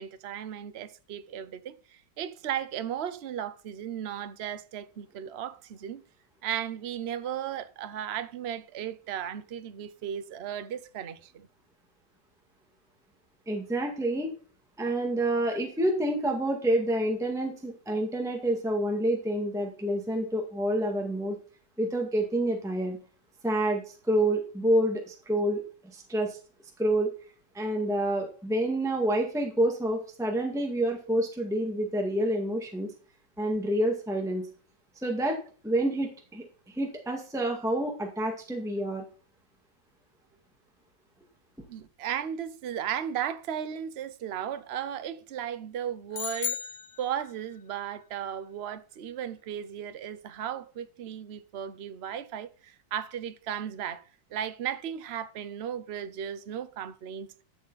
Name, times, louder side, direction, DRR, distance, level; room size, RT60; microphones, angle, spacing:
voice 1, 0.0-6.0 6.4-11.5 41.7-46.6 47.0-54.0 54.3-57.3, right 9 dB, 50° right, 0.8 m, -35 dB
voice 2, 13.5-14.3 14.8-21.4 21.8-23.0 23.4-25.6 25.9-26.4 26.8-27.1 27.5-32.9 33.4-34.5 35.0-35.4 35.6-39.0, right 1 dB, ahead, 1.9 m, -28 dB
sound 1, 46.1-47.6, left 8 dB, 60° left, 1.1 m, -35 dB
12.0 x 7.2 x 4.1 m
omnidirectional pair, 2.0 m